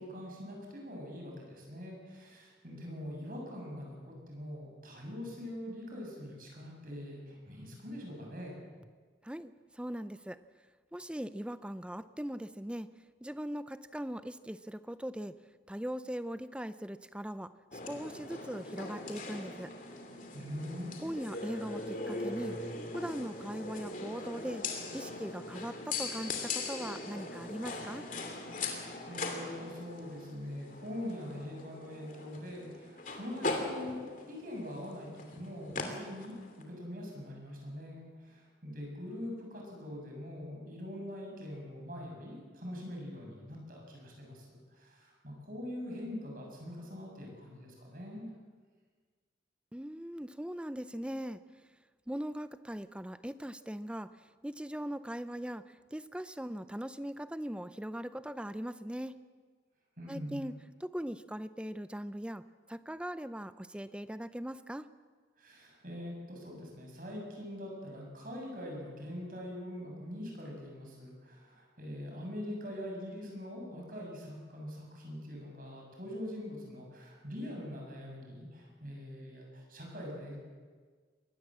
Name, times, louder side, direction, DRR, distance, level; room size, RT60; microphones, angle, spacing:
voice 1, 0.0-8.6 20.3-21.0 28.7-48.3 60.0-60.4 65.4-80.4, left 1 dB, 50° right, 0 dB, 6.8 m, -43 dB
voice 2, 9.2-10.4 10.9-12.9 13.2-15.3 15.7-19.7 21.0-22.6 22.9-24.6 24.9-28.1 49.7-51.4 52.1-54.2 54.4-59.1 60.1-60.5 60.8-64.9, equal, 5° right, 13 dB, 0.5 m, -40 dB
sound 1, 17.7-36.6, left 3 dB, 45° left, 2.8 m, -40 dB
22.0 x 18.5 x 7.5 m, 1.5 s
head